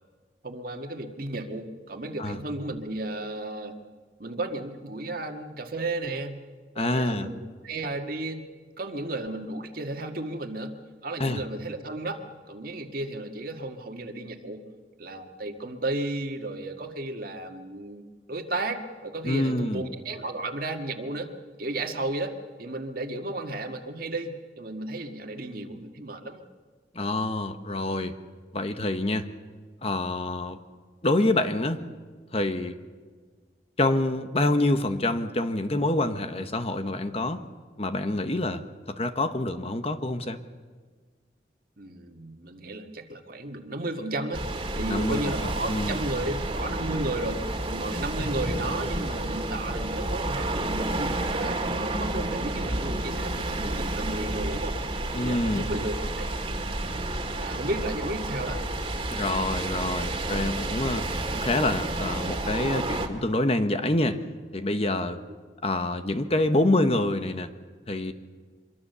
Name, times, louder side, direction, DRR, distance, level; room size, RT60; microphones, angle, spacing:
voice 1, 0.4-3.8 4.2-6.4 6.8-8.5 8.8-14.6 15.0-18.0 18.3-26.4 41.8-54.7 55.1-56.3 57.4-58.6, right 2 dB, 55° right, 5 dB, 1.8 m, -34 dB
voice 2, 6.8-7.3 11.2-11.4 19.2-19.8 26.9-28.1 28.5-29.3 29.8-30.6 31.0-31.8 32.3-32.8 33.8-37.4 37.8-38.6 38.9-40.4 44.9-45.3 45.7-46.0 55.1-55.7 59.1-64.2 64.5-65.2 65.6-67.5 67.9-68.1, left 2 dB, 35° left, 9 dB, 1.1 m, -26 dB
sound 1, 44.3-63.1, right 2 dB, 30° right, 2.1 m, -30 dB
25.0 x 23.0 x 6.9 m, 1.5 s
head